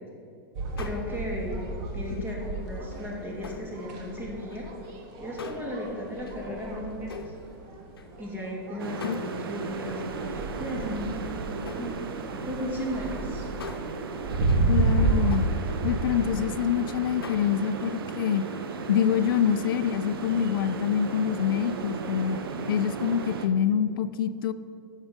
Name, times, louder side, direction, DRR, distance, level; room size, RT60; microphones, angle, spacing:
sound 1, 0.5-16.0, right 3 dB, 50° right, 1.4 m, -32 dB
sound 2, 0.8-1.8 2.2-4.0 4.3-8.6 9.0-9.8 10.4-16.8 17.2-18.9 19.1-19.4 19.8-19.9, left 4 dB, 90° left, 0.8 m, -45 dB
voice 1, 0.8-1.6 1.9-4.7 5.2-7.3 8.2-11.1 11.5-12.0 12.3-13.5, left 1 dB, 15° right, -1 dB, 2.3 m, -35 dB
sound 3, 8.8-23.5, right 4 dB, 80° right, 0.8 m, -35 dB
voice 2, 14.7-15.5 15.8-18.5 18.9-22.4 22.7-24.5, left 8 dB, 70° left, 13 dB, 0.4 m, -26 dB
9.0 x 6.3 x 4.9 m, 2.6 s
hypercardioid pair, 110°, 12 cm